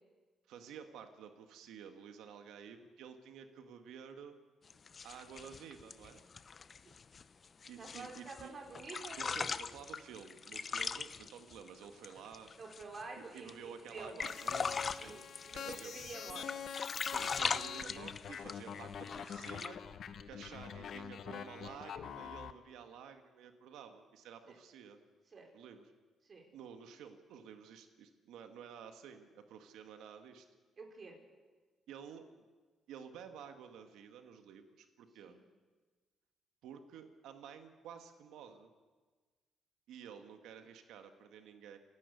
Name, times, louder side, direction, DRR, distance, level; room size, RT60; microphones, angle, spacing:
voice 1, 0.5-4.4 5.0-6.2 7.7-8.5 9.1-12.5 13.1-15.2 15.5-15.9 17.1-19.8 20.3-25.0 25.5-25.8 26.5-30.4 31.9-32.3 32.9-35.4 36.6-38.7 39.9-41.8, right 7 dB, 85° right, 6 dB, 1.8 m, -52 dB
sound 1, 4.7-8.5 8.7-13.0 13.4-13.5 13.9-16.1 16.4-18.7 19.1-19.7, left 5 dB, 40° left, 0.7 m, -40 dB
voice 2, 7.8-9.4 12.6-14.1 15.0-15.2 15.6-16.5 24.5-24.6 25.3-25.5 26.2-26.5 30.8-31.2 35.2-35.4, right 4 dB, 45° right, 1 dB, 4.8 m, -48 dB
sound 2, 14.2-22.5, left 8 dB, 60° left, 1.0 m, -45 dB
29.0 x 11.0 x 8.4 m, 1.4 s
cardioid pair, 90°, 0 cm